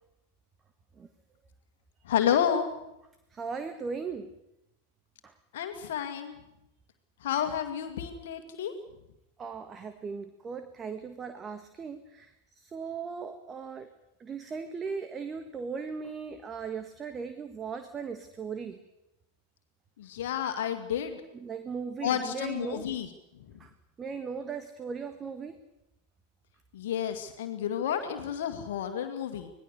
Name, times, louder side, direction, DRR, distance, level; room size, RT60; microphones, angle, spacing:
voice 1, 2.0-2.7 5.5-6.4 7.2-8.7 20.0-21.2 22.0-23.1 23.3-23.6 26.7-29.5, left 9 dB, 55° left, 6 dB, 2.1 m, -30 dB
voice 2, 3.3-4.3 5.2-5.3 9.4-13.9 14.2-18.8 21.3-22.9 23.6-23.7 24.0-25.6, right 5 dB, 20° right, 9 dB, 1.4 m, -38 dB
25.5 x 19.0 x 6.7 m, 0.86 s
figure-of-eight pair, 90°, 0 cm